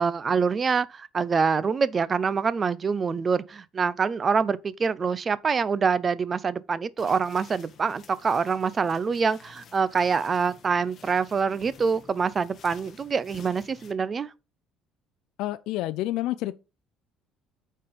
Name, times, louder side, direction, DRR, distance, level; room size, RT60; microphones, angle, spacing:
voice 1, 0.0-14.3, right 5 dB, 25° right, 0.5 m, -25 dB
sound 1, 7.0-13.9, left 6 dB, 40° left, 1.3 m, -51 dB
voice 2, 15.4-16.5, left 15 dB, 75° left, 0.4 m, -29 dB
8.7 x 4.4 x 5.1 m
cardioid pair, 145°, 0 cm